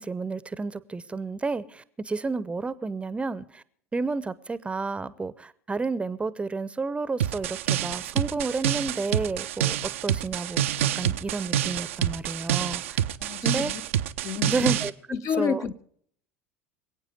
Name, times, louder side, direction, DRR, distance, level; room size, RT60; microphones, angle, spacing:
voice 1, 0.0-3.6 3.9-10.6 11.0-13.0 13.4-13.7 14.5-14.9 15.4-15.6, right 3 dB, 15° right, 0.8 m, -31 dB
sound 1, 7.2-14.9, right 11 dB, 65° right, 0.6 m, -27 dB
voice 2, 13.2-13.8 14.2-14.7 15.1-15.8, left 7 dB, 40° left, 0.8 m, -30 dB
25.5 x 8.9 x 5.1 m
figure-of-eight pair, 70°, 7 cm